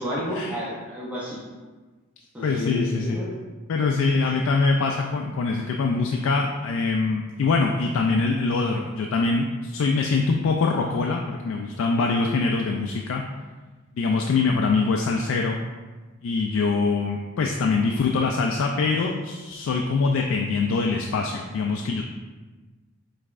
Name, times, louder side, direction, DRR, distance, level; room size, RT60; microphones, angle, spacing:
voice 1, 0.0-1.4 2.3-3.3 3.9-4.3, left 1 dB, 5° right, -8 dB, 0.7 m, -31 dB
voice 2, 2.4-3.2 3.7-13.2 14.0-15.6 16.2-22.0, left 4 dB, 75° left, 1 dB, 0.3 m, -23 dB
5.2 x 3.3 x 2.4 m, 1.3 s
head